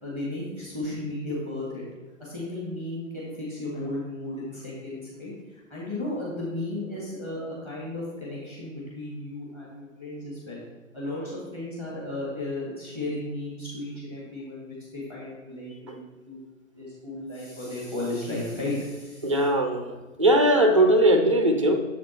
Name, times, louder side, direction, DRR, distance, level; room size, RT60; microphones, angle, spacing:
voice 1, 0.0-1.8 2.2-10.6 10.9-16.4 16.7-19.3, left 1 dB, 15° left, -6 dB, 1.5 m, -34 dB
voice 2, 19.2-21.8, right 1 dB, 25° right, 5 dB, 0.4 m, -20 dB
6.6 x 5.1 x 4.3 m, 1.2 s
figure-of-eight pair, 130°, 41 cm